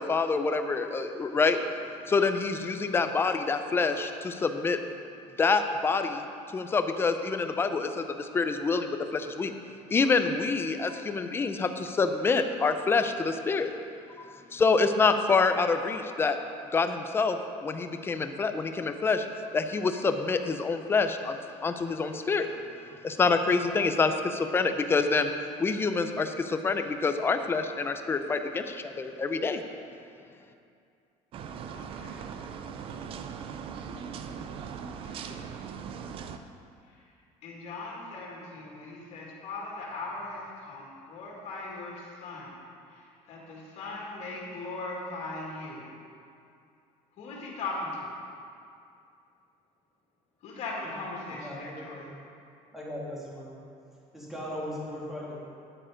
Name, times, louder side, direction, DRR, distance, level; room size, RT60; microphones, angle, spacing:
voice 1, 0.0-1.6 2.1-4.8 5.4-6.2 6.5-9.5 9.9-13.7 14.2-16.4 16.7-19.3 19.5-21.4 21.6-22.5 23.0-25.3 25.6-29.6, left 4 dB, 15° left, 8 dB, 0.5 m, -26 dB
sound 1, 31.3-36.4, right 6 dB, 40° right, 0.5 m, -39 dB
voice 2, 31.7-32.1 35.0-35.5 37.4-42.5 43.3-45.8 47.2-47.9 50.4-51.9, left 3 dB, 50° left, -3 dB, 2.5 m, -39 dB
voice 3, 51.3-52.0 52.7-53.5 54.1-55.3, left 1 dB, ahead, -7 dB, 2.5 m, -38 dB
10.0 x 8.7 x 5.1 m, 2.5 s
cardioid pair, 160°, 14 cm